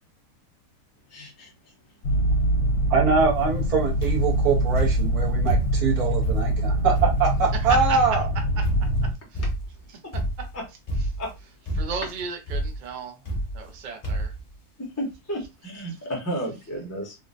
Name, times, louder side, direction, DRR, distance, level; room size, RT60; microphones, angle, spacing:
voice 1, 1.1-2.0 10.0-10.1 10.5-10.6 11.2-11.3 14.8-17.2, equal, 15° left, 0.6 m, -33 dB
sound 1, 2.0-9.1, right 1 dB, 70° left, 1.2 m, -24 dB
voice 2, 2.9-8.3, right 5 dB, 75° right, 1.5 m, -23 dB
sound 2, 4.0-4.4 4.8-5.9 6.2-8.2 8.6-9.1 9.3-9.8 10.1-10.5 10.9-11.4 11.7-12.1 12.5-12.8 13.3-13.8 14.0-14.4 15.1-15.2 15.4-15.5, right 1 dB, 35° left, 0.8 m, -28 dB
voice 3, 11.8-13.2 13.5-14.3, right 5 dB, 50° right, 0.6 m, -34 dB
3.7 x 2.2 x 2.5 m
omnidirectional pair, 1.6 m